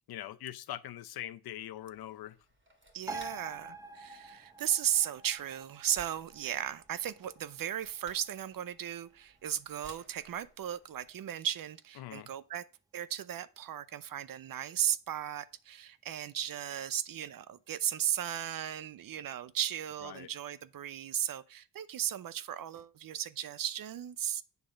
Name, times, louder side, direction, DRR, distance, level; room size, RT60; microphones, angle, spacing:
voice 1, 0.1-2.4 12.0-12.3 20.0-20.3, left 13 dB, 80° left, 0.7 m, -42 dB
sound 1, 1.8-11.1, right 1 dB, 30° right, 2.2 m, -60 dB
voice 2, 2.9-12.6 12.9-24.4, right 10 dB, 65° right, 0.7 m, -36 dB
sound 2, 3.1-10.0 10.4-10.5, right 3 dB, 10° right, 0.7 m, -48 dB
8.1 x 3.6 x 6.4 m
cardioid pair, 65°, 37 cm